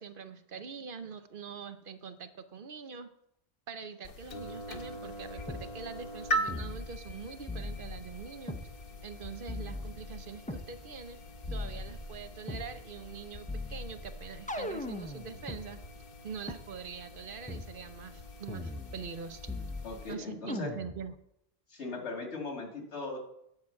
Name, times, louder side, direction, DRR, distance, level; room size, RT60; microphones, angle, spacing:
voice 1, 0.0-3.1 3.7-8.6 9.0-11.2 11.5-15.8 16.2-19.4 20.1-21.1, right 6 dB, 55° right, 10 dB, 0.8 m, -44 dB
sound 1, 4.0-20.1, right 1 dB, 55° left, 1.1 m, -42 dB
sound 2, 5.5-5.7 6.5-7.1 7.5-8.7 9.5-10.7 11.5-12.7 13.5-15.6 16.5-16.6 17.5-17.7 18.5-19.2 19.5-20.1 20.5-21.1, left 2 dB, 10° left, 0.5 m, -39 dB
voice 2, 19.8-20.7 21.7-23.2, left 3 dB, 90° left, 3 dB, 2.2 m, -39 dB
9.5 x 4.6 x 7.3 m, 0.78 s
omnidirectional pair, 1.1 m